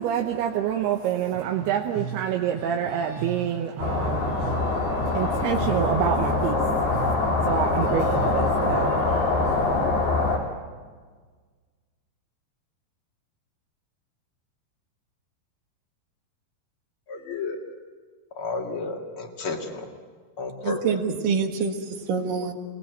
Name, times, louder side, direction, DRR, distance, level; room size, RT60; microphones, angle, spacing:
voice 1, 0.0-9.8, right 9 dB, 80° right, 2 dB, 3.0 m, -28 dB
sound 1, 3.8-10.4, left 3 dB, 75° left, 5.6 m, -24 dB
voice 2, 17.1-17.6 18.4-19.9 20.4-21.0, left 3 dB, 40° left, 2 dB, 2.5 m, -32 dB
voice 3, 20.6-22.5, right 5 dB, 60° right, 4 dB, 3.0 m, -26 dB
29.5 x 19.0 x 8.0 m, 1.5 s
omnidirectional pair, 4.7 m